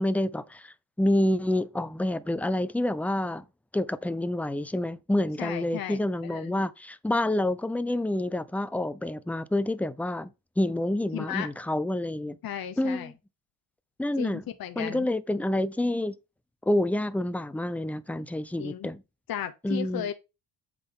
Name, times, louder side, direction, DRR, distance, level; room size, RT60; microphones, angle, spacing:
voice 1, 0.0-3.4 3.7-10.3 10.6-12.4 12.8-13.1 14.0-14.4 14.8-16.1 16.6-19.0 19.6-20.1, left 1 dB, 5° left, 0.6 m, -28 dB
voice 2, 5.4-6.5 11.1-11.5 12.4-13.1 14.2-15.1 18.6-18.9 19.3-20.1, left 10 dB, 50° left, 0.9 m, -35 dB
7.9 x 5.1 x 3.8 m
supercardioid pair, 60°, 47 cm